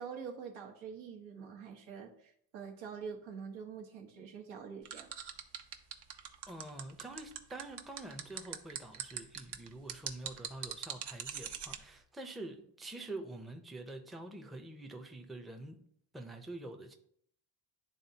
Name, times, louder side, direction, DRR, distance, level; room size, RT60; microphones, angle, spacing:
voice 1, 0.0-5.1, right 6 dB, 85° right, 1.2 m, -45 dB
sound 1, 4.9-11.8, right 9 dB, 60° right, 0.8 m, -41 dB
voice 2, 6.5-15.8 16.1-16.9, right 2 dB, ahead, 0.5 m, -46 dB
10.5 x 3.7 x 2.8 m
cardioid pair, 115°, 46 cm